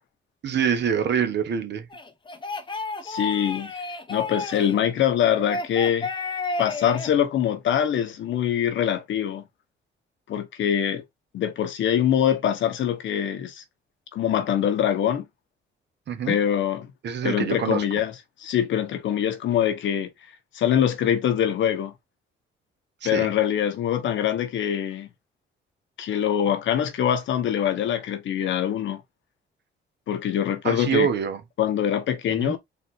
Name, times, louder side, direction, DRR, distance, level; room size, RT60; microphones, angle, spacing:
voice 1, 0.4-1.9 16.1-16.4 17.0-17.8 23.0-23.3 30.6-31.4 32.4-32.5, right 7 dB, 60° right, 1.1 m, -25 dB
sound 1, 1.9-4.8 5.3-7.1, left 3 dB, 25° left, 0.9 m, -31 dB
voice 2, 3.0-3.7 4.1-6.1 6.6-9.4 10.3-11.0 11.3-13.6 14.1-15.3 16.3-16.9 17.2-18.1 18.4-20.1 20.5-21.9 23.0-25.1 26.0-29.0 30.1-31.1 31.6-32.6, left 9 dB, 70° left, 1.1 m, -24 dB
4.1 x 2.7 x 4.3 m
cardioid pair, 90°, 20 cm